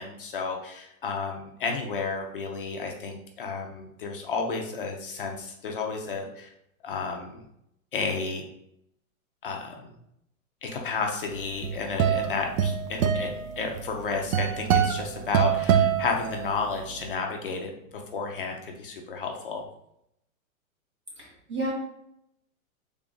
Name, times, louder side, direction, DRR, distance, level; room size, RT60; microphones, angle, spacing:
voice 1, 0.0-6.5 6.8-7.4 7.9-8.4 9.4-9.9 10.6-19.6, left 4 dB, 40° left, 2 dB, 0.4 m, -32 dB
sound 1, 11.4-16.8, right 8 dB, 80° right, 0.6 m, -25 dB
voice 2, 21.2-21.7, right 2 dB, 25° right, -4 dB, 0.4 m, -31 dB
3.3 x 2.4 x 3.7 m, 0.78 s
hypercardioid pair, 170°, 42 cm